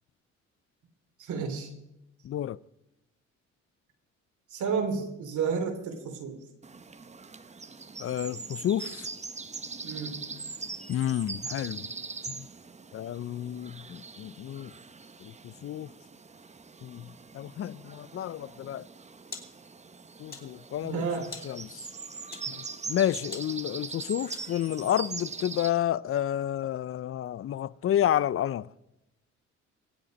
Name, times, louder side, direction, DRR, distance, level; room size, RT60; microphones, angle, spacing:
voice 1, 1.2-1.7 4.5-6.4 9.8-10.2 20.8-21.4, right 5 dB, 80° right, 3.1 m, -31 dB
voice 2, 2.2-2.6 8.0-9.1 10.9-11.8 12.3-12.5 12.9-14.7 15.2-15.9 16.8-18.9 20.2-21.0 21.4-21.9 22.5-28.7, left 11 dB, 50° left, 0.4 m, -30 dB
sound 1, 6.6-25.7, right 4 dB, 25° right, 0.9 m, -42 dB
sound 2, 18.7-24.8, left 4 dB, 30° left, 3.4 m, -49 dB
23.5 x 8.6 x 5.2 m
cardioid pair, 90°, 30 cm